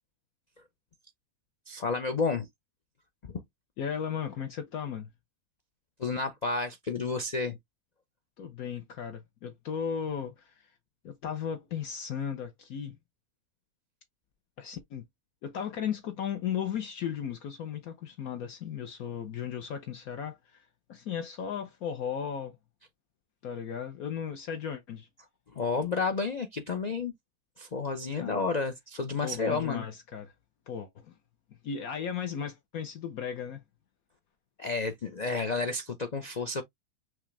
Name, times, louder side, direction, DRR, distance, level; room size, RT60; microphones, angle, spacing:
voice 1, 1.7-2.5 6.0-7.6 25.5-27.1 27.6-29.9 34.6-36.6, left 4 dB, 85° left, 0.3 m, -31 dB
voice 2, 3.8-5.1 8.4-10.7 11.0-13.0 14.6-15.0 15.4-22.6 23.4-25.1 28.1-28.4 29.2-30.3 30.7-31.1 31.6-33.6, left 8 dB, 65° left, 1.2 m, -36 dB
6.2 x 2.4 x 3.2 m
omnidirectional pair, 1.7 m